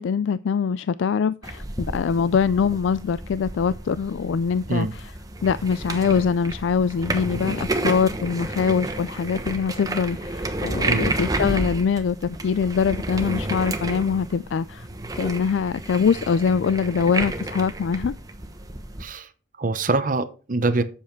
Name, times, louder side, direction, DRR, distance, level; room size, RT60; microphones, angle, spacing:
voice 1, 0.0-5.1 5.4-14.9 15.1-18.1, left 6 dB, 85° left, 0.3 m, -23 dB
sound 1, 1.4-19.0, right 2 dB, 20° right, 1.0 m, -31 dB
voice 2, 19.6-20.8, right 3 dB, 45° right, 0.8 m, -24 dB
8.3 x 7.1 x 4.5 m
head